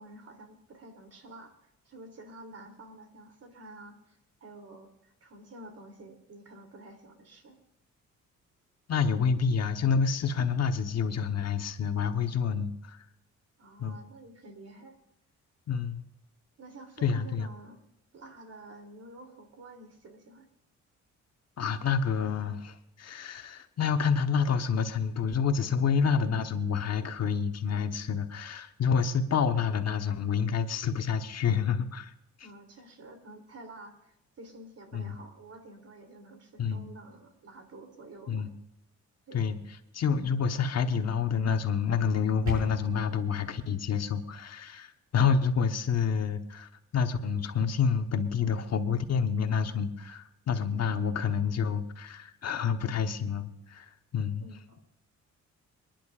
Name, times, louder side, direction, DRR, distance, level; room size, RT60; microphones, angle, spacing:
voice 1, 0.0-1.5 1.8-7.6 13.6-14.9 16.6-17.8 18.1-20.5 32.4-38.5 39.3-39.4 54.4-54.8, right 2 dB, 55° right, 5 dB, 3.1 m, -49 dB
voice 2, 8.9-13.0 13.8-14.0 15.7-16.0 17.0-17.5 21.6-32.1 34.9-35.2 36.6-36.9 38.3-38.5 39.3-39.6 39.9-54.5, left 6 dB, 60° left, 6 dB, 1.2 m, -28 dB
sound 1, 42.0-43.0, equal, 75° right, 6.6 m, -37 dB
27.5 x 10.5 x 2.5 m, 0.84 s
cardioid pair, 100°, 29 cm